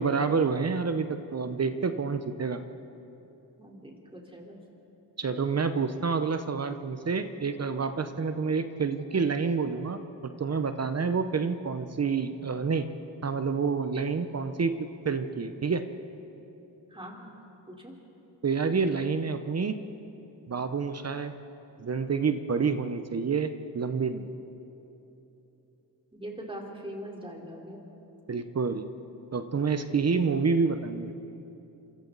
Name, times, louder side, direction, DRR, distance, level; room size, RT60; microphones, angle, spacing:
voice 1, 0.0-2.6 5.2-12.9 13.2-15.8 18.4-19.8 20.5-21.3 21.8-24.3 28.3-28.9 29.3-31.1, right 5 dB, 35° right, 9 dB, 1.0 m, -28 dB
voice 2, 3.6-4.6 16.9-17.4 17.7-17.9 26.1-27.8, equal, 10° right, -1 dB, 4.0 m, -42 dB
27.0 x 24.5 x 4.1 m, 3.0 s
cardioid pair, 80°, 44 cm